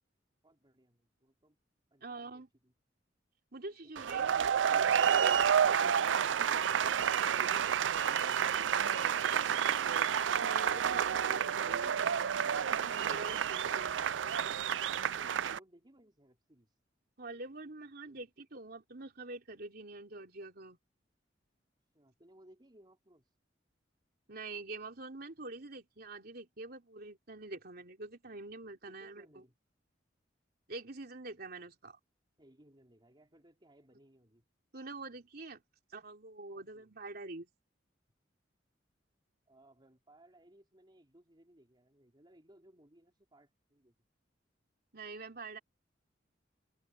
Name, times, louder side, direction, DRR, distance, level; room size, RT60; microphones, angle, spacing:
voice 1, 0.4-1.6 1.9-2.7 3.8-4.4 15.1-16.8 18.1-18.3 21.9-23.3 28.9-29.6 32.4-34.4 36.5-36.9 39.5-43.9, right 1 dB, 25° right, 3.5 m, -63 dB
voice 2, 2.0-2.5 3.5-4.4 4.6-5.4 10.4-12.0 12.9-14.0 17.2-20.8 24.3-29.4 30.7-32.0 34.7-35.6 35.9-37.5 44.9-45.6, right 3 dB, 55° right, 3.3 m, -46 dB
sound 1, 4.0-15.6, right 8 dB, 80° right, 0.5 m, -30 dB
head